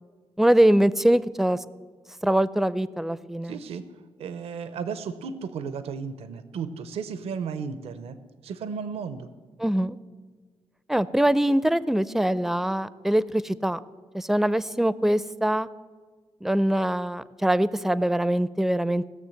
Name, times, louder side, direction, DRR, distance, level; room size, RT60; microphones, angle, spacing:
voice 1, 0.4-1.6 2.2-3.6 9.6-10.0 10.9-13.8 14.1-15.7 16.4-19.0, right 1 dB, 5° right, 18 dB, 0.4 m, -23 dB
voice 2, 3.4-3.8 4.2-9.3, right 6 dB, 85° right, 13 dB, 0.7 m, -34 dB
17.0 x 6.4 x 7.7 m, 1.5 s
cardioid pair, 75°, 10 cm